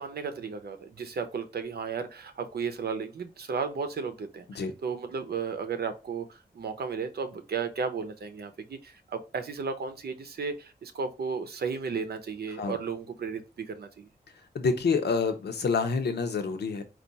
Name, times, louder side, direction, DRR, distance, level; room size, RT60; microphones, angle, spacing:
voice 1, 0.0-14.1, right 5 dB, 70° right, 8 dB, 0.7 m, -34 dB
voice 2, 14.5-16.8, left 5 dB, 80° left, 6 dB, 0.7 m, -27 dB
4.5 x 2.5 x 4.0 m, 0.29 s
wide cardioid pair, 145°, 17 cm